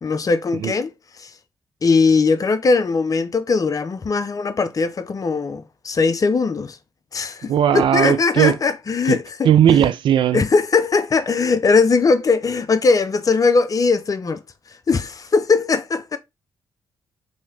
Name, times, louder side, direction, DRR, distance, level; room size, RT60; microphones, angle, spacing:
voice 1, 0.0-0.9 1.2-1.3 1.8-6.8 7.1-9.8 10.3-14.4 14.9-16.2, left 4 dB, 40° left, 0.6 m, -19 dB
voice 2, 7.5-8.6 9.1-9.2 9.4-10.4, right 10 dB, 65° right, 0.4 m, -17 dB
3.1 x 2.8 x 2.8 m
hypercardioid pair, 40°, 9 cm